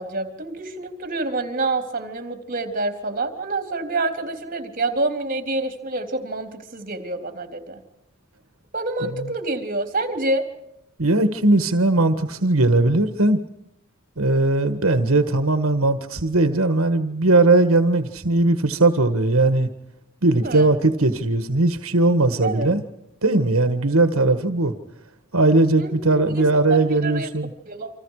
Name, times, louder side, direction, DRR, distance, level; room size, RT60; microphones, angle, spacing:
voice 1, 0.0-7.8 8.7-10.4 20.4-20.7 22.4-22.7 25.8-27.3 27.7-27.9, right 2 dB, 40° right, 7 dB, 3.6 m, -27 dB
voice 2, 9.0-9.3 11.0-13.4 14.2-19.7 20.2-22.8 23.2-24.7 25.3-27.5, right 2 dB, 85° right, 9 dB, 1.7 m, -19 dB
29.0 x 26.0 x 4.9 m, 0.84 s
head